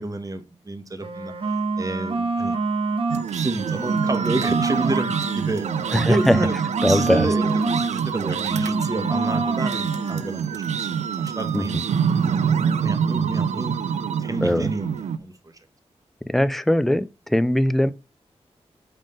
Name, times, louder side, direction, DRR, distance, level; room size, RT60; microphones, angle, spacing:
voice 1, 0.0-2.6 3.3-6.5 6.9-10.9 11.2-11.8 12.2-13.8 14.2-15.5, right 2 dB, 30° right, 1.2 m, -30 dB
sound 1, 0.9-3.3 3.6-8.0 8.2-10.2, right 3 dB, 55° right, 1.0 m, -26 dB
sound 2, 3.1-15.2, right 7 dB, 80° right, 0.4 m, -26 dB
voice 2, 5.9-6.4 6.8-7.3 11.5-11.8 14.4-14.7 16.3-17.9, left 1 dB, ahead, 0.4 m, -20 dB
5.5 x 3.6 x 5.2 m
cardioid pair, 65°, 12 cm